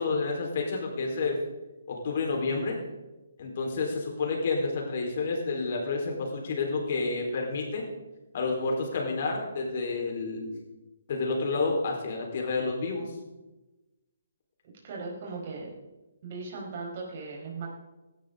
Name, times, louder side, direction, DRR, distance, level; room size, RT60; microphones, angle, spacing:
voice 1, 0.0-1.4 1.9-2.8 3.4-7.8 8.3-10.5 11.1-13.1, left 3 dB, 50° left, 1 dB, 4.5 m, -29 dB
voice 2, 14.8-15.7 16.2-17.7, right 4 dB, 40° right, -1 dB, 5.1 m, -38 dB
17.0 x 12.5 x 4.0 m, 1.1 s
figure-of-eight pair, 140°, 0 cm